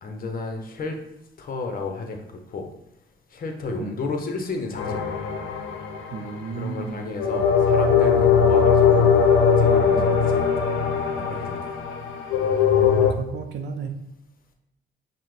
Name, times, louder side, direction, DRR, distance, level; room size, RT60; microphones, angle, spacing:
voice 1, 0.0-1.0 1.4-2.2 2.5-2.7 3.3-5.0 6.5-9.1 9.6-11.8, left 3 dB, 45° left, 3 dB, 0.8 m, -32 dB
sound 1, 4.8-6.5 7.2-13.1, left 6 dB, 80° left, 0.6 m, -20 dB
voice 2, 6.1-7.0 9.9-10.1 12.8-14.0, right 5 dB, 60° right, 5 dB, 0.5 m, -33 dB
5.5 x 2.1 x 3.2 m, 0.85 s
cardioid pair, 90°, 20 cm